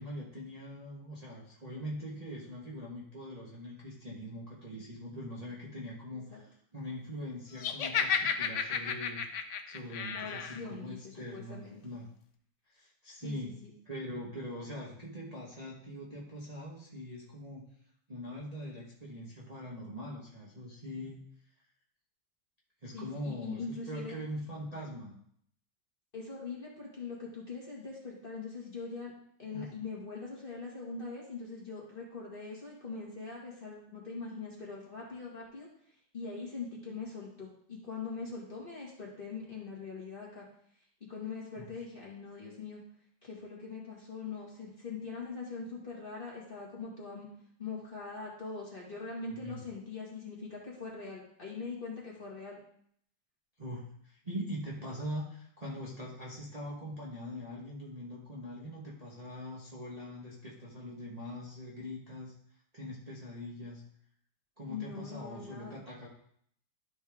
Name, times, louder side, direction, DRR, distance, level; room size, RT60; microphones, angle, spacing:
voice 1, 0.0-9.3 9.7-12.1 12.7-13.5 13.8-17.7 18.1-21.2 22.8-25.2 29.5-29.6 41.6-41.7 49.3-49.6 53.6-62.3 62.7-63.8 64.6-66.1, equal, 25° right, -6 dB, 1.3 m, -42 dB
Laughter, 7.6-10.6, left 7 dB, 65° left, 0.8 m, -32 dB
voice 2, 10.1-11.8 13.2-13.7 22.9-24.1 26.1-29.1 29.4-35.7 36.1-40.4 41.1-42.8 43.2-47.3 47.6-52.6 64.7-65.8, left 4 dB, 30° left, -4 dB, 1.9 m, -42 dB
12.5 x 4.4 x 3.5 m, 0.67 s
omnidirectional pair, 1.9 m